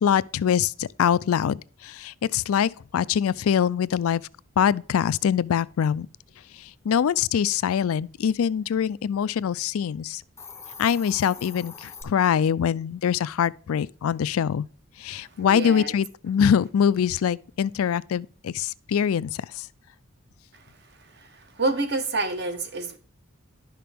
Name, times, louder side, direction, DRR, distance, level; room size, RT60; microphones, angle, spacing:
voice 1, 0.0-4.2 4.6-6.1 6.8-10.2 10.8-14.7 15.0-19.6, left 8 dB, 80° left, 0.4 m, -24 dB
Hiss, 10.2-12.0, left 5 dB, 10° left, 0.7 m, -42 dB
voice 2, 15.4-15.9 21.3-23.0, right 2 dB, 50° right, 1.3 m, -28 dB
11.0 x 5.9 x 3.5 m
head